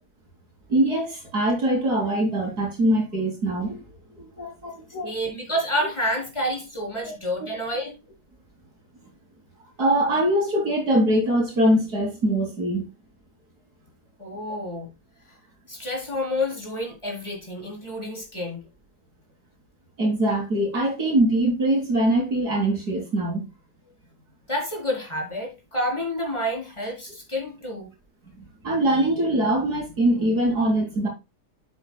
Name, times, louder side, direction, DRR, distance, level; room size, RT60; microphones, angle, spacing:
voice 1, 0.7-3.8 4.2-5.2 7.0-7.1 7.4-7.5 9.8-12.8 20.0-23.5 28.6-31.1, right 1 dB, 80° right, 4.4 m, -23 dB
voice 2, 5.0-8.0 14.2-14.9 15.7-18.6 24.5-27.9, left 1 dB, 15° left, 4.3 m, -29 dB
9.5 x 8.6 x 2.3 m
omnidirectional pair, 1.6 m